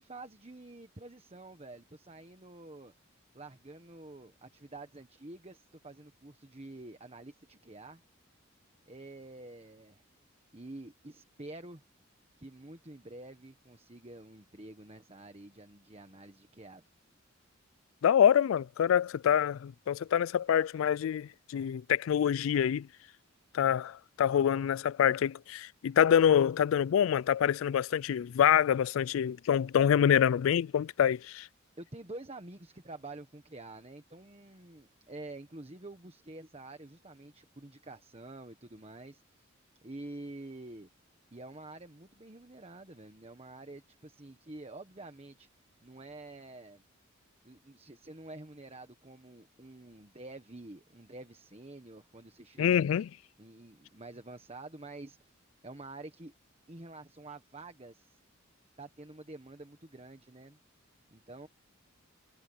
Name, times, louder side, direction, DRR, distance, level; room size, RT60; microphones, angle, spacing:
voice 1, 0.0-2.9 3.3-8.0 8.9-10.0 10.5-11.8 12.4-16.9 31.8-39.5 39.8-40.9 41.3-45.5 45.8-46.8 47.4-52.9 53.4-56.3 56.7-58.2 58.8-60.6 61.1-61.5, right 2 dB, 30° right, 1.3 m, -48 dB
voice 2, 18.0-22.9 23.5-31.5 52.6-53.1, left 9 dB, 80° left, 0.3 m, -26 dB
head